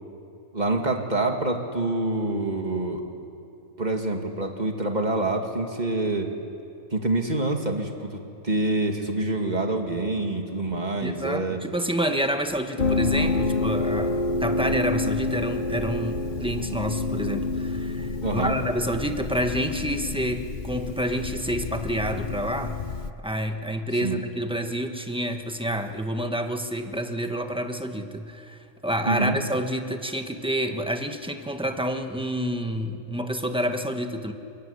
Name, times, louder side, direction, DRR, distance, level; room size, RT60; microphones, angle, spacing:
voice 1, 0.5-3.0 3.8-6.3 6.9-11.6 18.2-18.6 24.0-24.2 29.0-29.4, right 2 dB, 30° right, 3 dB, 2.4 m, -26 dB
voice 2, 11.0-22.8 23.2-34.3, equal, 5° right, 6 dB, 1.3 m, -28 dB
sound 1, 12.8-23.1, left 3 dB, 40° left, 0.9 m, -28 dB
23.0 x 23.0 x 9.9 m, 2.7 s
omnidirectional pair, 1.4 m